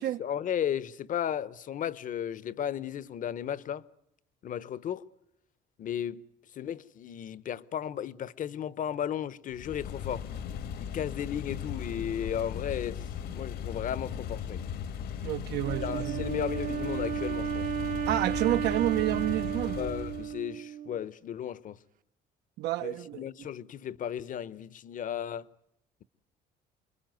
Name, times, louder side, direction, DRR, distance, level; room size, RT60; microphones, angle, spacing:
voice 1, 0.0-3.8 4.4-5.0 5.8-6.3 6.5-10.3 10.8-13.0 13.3-14.6 15.8-17.7 19.8-21.8 22.8-25.5, left 9 dB, 50° left, 1.0 m, -35 dB
sound 1, 9.5-20.4, left 8 dB, 70° left, 1.7 m, -37 dB
voice 2, 15.2-16.3 18.1-19.8 22.6-23.5, right 15 dB, 85° right, 1.1 m, -30 dB
Wind instrument woodwind instrument, 15.6-21.0, right 9 dB, 55° right, 1.0 m, -34 dB
28.0 x 22.0 x 9.3 m
cardioid pair, 110°, 17 cm